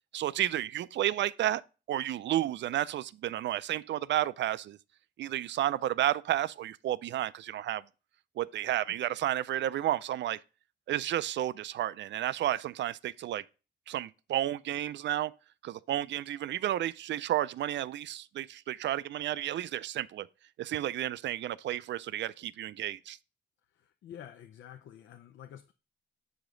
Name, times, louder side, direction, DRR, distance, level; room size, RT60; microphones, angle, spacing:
voice 1, 0.1-1.6 1.9-4.8 5.2-7.8 8.4-10.4 10.9-13.4 13.9-15.3 15.6-20.3 20.6-23.2, right 12 dB, 70° right, 0.4 m, -32 dB
voice 2, 23.8-25.7, left 10 dB, 80° left, 0.6 m, -49 dB
8.1 x 5.0 x 3.8 m
cardioid pair, 105°, 19 cm